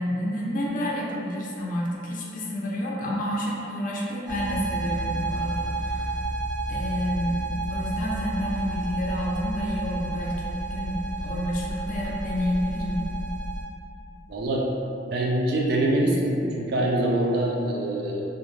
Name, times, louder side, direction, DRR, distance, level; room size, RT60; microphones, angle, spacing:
voice 1, 0.0-6.1 6.7-7.4 7.7-10.9 11.2-13.1, equal, 45° left, -4 dB, 0.4 m, -29 dB
sound 1, 4.3-13.6, right 2 dB, 80° right, 0.7 m, -31 dB
voice 2, 14.3-14.7 15.1-18.3, right 1 dB, 60° right, -2 dB, 0.4 m, -24 dB
2.5 x 2.1 x 3.1 m, 2.7 s
head